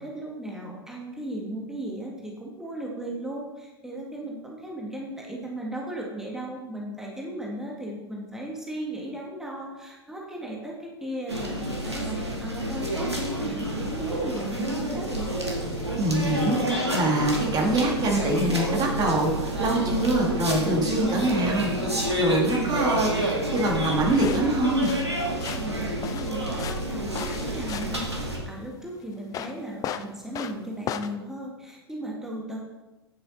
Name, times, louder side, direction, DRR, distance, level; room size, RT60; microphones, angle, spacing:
voice 1, 0.0-15.4 25.5-32.6, right 1 dB, 5° right, -2 dB, 1.8 m, -36 dB
sound 1, 11.3-28.4, right 1 dB, 85° right, 2.0 m, -29 dB
voice 2, 16.0-24.9, right 1 dB, 30° right, 0 dB, 2.0 m, -24 dB
sound 2, 24.1-31.1, left 9 dB, 25° left, 0.5 m, -37 dB
9.4 x 7.7 x 4.2 m, 1.0 s
figure-of-eight pair, 90°, 14 cm